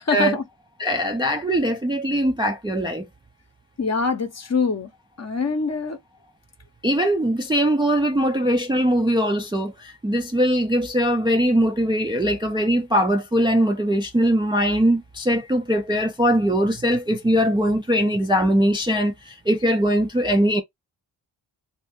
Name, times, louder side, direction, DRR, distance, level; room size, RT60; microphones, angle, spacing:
voice 1, 0.1-0.4 0.8-3.0 6.8-20.6, equal, 10° right, 0.3 m, -21 dB
voice 2, 3.8-4.9 5.2-6.0, left 5 dB, 35° left, 0.7 m, -24 dB
2.8 x 2.4 x 3.5 m
wide cardioid pair, 115°, 45 cm